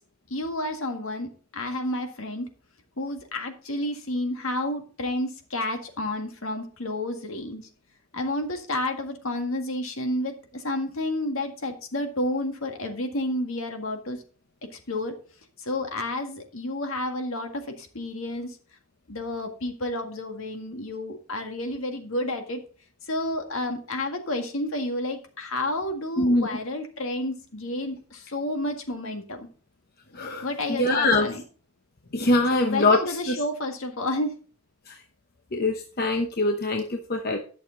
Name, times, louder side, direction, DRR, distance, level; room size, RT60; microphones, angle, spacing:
voice 1, 0.3-2.5 3.0-7.7 8.1-14.2 14.9-15.1 15.6-18.6 19.1-22.6 23.1-29.5 30.4-31.4 32.5-34.3, left 1 dB, 65° left, 5 dB, 1.8 m, -30 dB
voice 2, 26.2-26.6 30.1-31.4 32.1-33.4 34.9-35.0 35.5-37.4, left 2 dB, 45° left, 4 dB, 0.9 m, -23 dB
11.5 x 6.7 x 3.9 m, 0.40 s
head